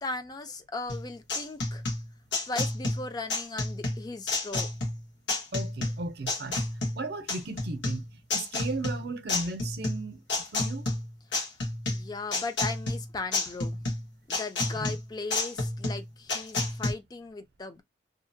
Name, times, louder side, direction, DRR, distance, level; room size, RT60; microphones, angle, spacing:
voice 1, 0.0-1.8 2.5-4.7 11.9-13.9 14.3-17.8, left 3 dB, 20° left, 0.3 m, -37 dB
sound 1, 0.9-16.9, left 2 dB, 80° left, 1.1 m, -31 dB
voice 2, 5.5-6.6 6.9-10.2 10.5-10.9 14.8-15.0, right 2 dB, 60° right, 0.5 m, -36 dB
2.7 x 2.0 x 2.6 m
head